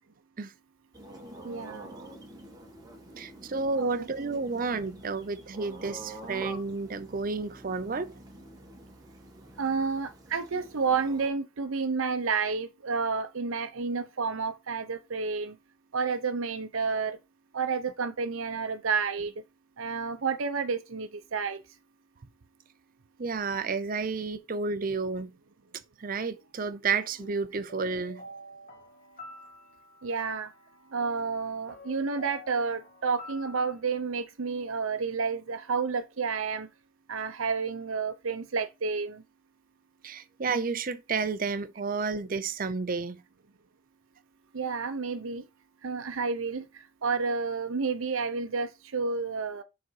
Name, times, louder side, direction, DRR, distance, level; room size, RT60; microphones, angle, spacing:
sound 1, 0.9-11.3, right 1 dB, 20° right, 1.3 m, -47 dB
voice 1, 1.4-1.9 3.8-4.1 9.6-15.6 15.9-17.2 17.5-19.3 19.8-21.6 30.0-30.5 30.9-36.7 37.1-39.2 44.5-45.5 45.8-49.6, right 5 dB, 85° right, 0.7 m, -30 dB
voice 2, 3.2-8.1 23.2-25.3 26.0-28.2 40.0-43.2, right 4 dB, 40° right, 0.6 m, -31 dB
sound 2, 27.1-33.8, left 2 dB, 40° left, 1.3 m, -48 dB
6.4 x 4.0 x 4.7 m
head